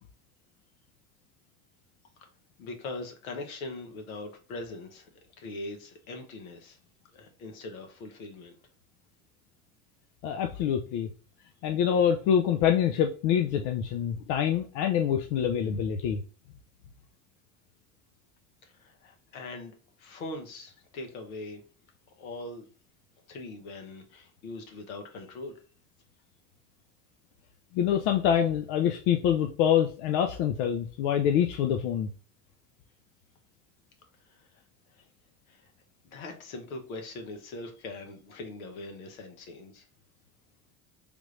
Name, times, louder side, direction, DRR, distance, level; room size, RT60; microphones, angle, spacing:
voice 1, 2.6-5.1 5.4-6.8 7.1-8.5 18.6-21.6 22.2-22.6 23.3-25.6 34.3-34.5 34.9-35.0 35.5-35.7 36.0-39.8, left 2 dB, 85° left, 4 dB, 1.1 m, -41 dB
voice 2, 10.2-11.1 11.6-16.2 27.7-32.1, left 9 dB, 65° left, 6 dB, 0.6 m, -25 dB
3.4 x 2.4 x 3.1 m, 0.38 s
hypercardioid pair, 80°, 41 cm